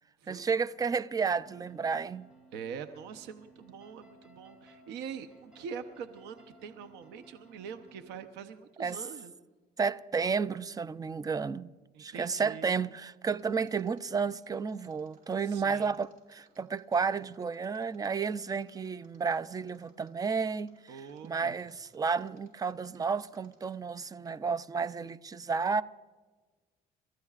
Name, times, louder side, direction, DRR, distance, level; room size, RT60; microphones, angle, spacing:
voice 1, 0.3-2.3 8.8-9.0 9.8-11.7 12.0-25.8, right 5 dB, 20° right, 0.5 m, -32 dB
sound 1, 1.2-8.1, right 2 dB, 5° right, 6.0 m, -58 dB
voice 2, 2.5-9.3 11.9-12.7 15.4-15.9 20.9-21.5, right 7 dB, 90° right, 0.8 m, -44 dB
Mechanisms, 13.3-23.9 24.2-24.3, right 3 dB, 50° right, 5.5 m, -66 dB
29.5 x 14.0 x 2.4 m
cardioid pair, 110°, 17 cm